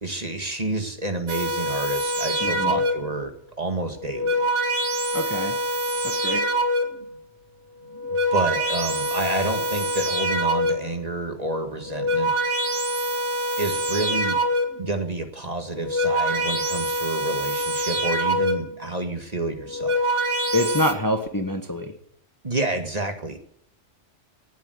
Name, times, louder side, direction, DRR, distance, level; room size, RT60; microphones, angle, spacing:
voice 1, 0.0-4.4 8.1-12.3 13.6-14.4 14.8-20.1 22.4-23.4, right 2 dB, 35° right, 5 dB, 2.1 m, -29 dB
sound 1, 1.3-3.2 4.0-7.1 7.9-11.0 11.7-14.9 15.7-18.8 19.6-20.9, equal, 80° right, 2.1 m, -25 dB
voice 2, 2.4-2.8 5.1-5.6 6.0-6.5 20.5-21.9, left 1 dB, 15° left, 6 dB, 1.4 m, -25 dB
19.0 x 9.0 x 8.0 m, 0.69 s
omnidirectional pair, 1.2 m